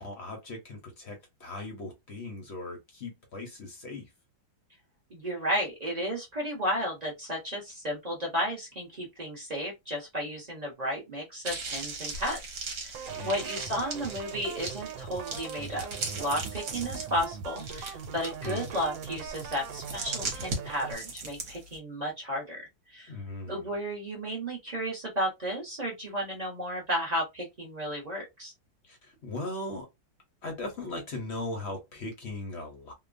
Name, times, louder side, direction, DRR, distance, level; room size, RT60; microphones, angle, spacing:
voice 1, 0.0-4.1 13.1-13.4 18.4-18.7 23.1-23.7 28.8-29.9 30.4-32.9, left 2 dB, 50° left, 0.8 m, -38 dB
voice 2, 5.1-12.4 12.8-15.9 16.1-22.6 22.9-23.1 23.4-28.5, equal, 35° right, 0.7 m, -33 dB
sound 1, 11.4-21.8, right 3 dB, 60° right, 1.2 m, -39 dB
sound 2, 12.9-20.9, right 7 dB, 85° right, 1.3 m, -41 dB
3.0 x 2.2 x 2.4 m
omnidirectional pair, 2.0 m